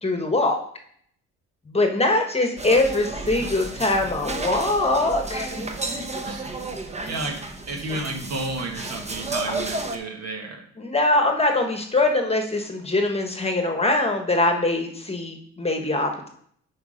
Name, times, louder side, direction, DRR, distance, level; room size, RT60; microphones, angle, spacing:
voice 1, 0.0-0.6 1.7-5.5 10.8-16.3, left 2 dB, 20° left, 4 dB, 1.3 m, -22 dB
sound 1, 2.6-10.0, right 2 dB, 20° right, 0.9 m, -32 dB
voice 2, 6.2-6.6 7.1-10.6, right 2 dB, 55° right, 2 dB, 1.7 m, -32 dB
7.9 x 4.8 x 5.1 m, 0.63 s
cardioid pair, 90°, 30 cm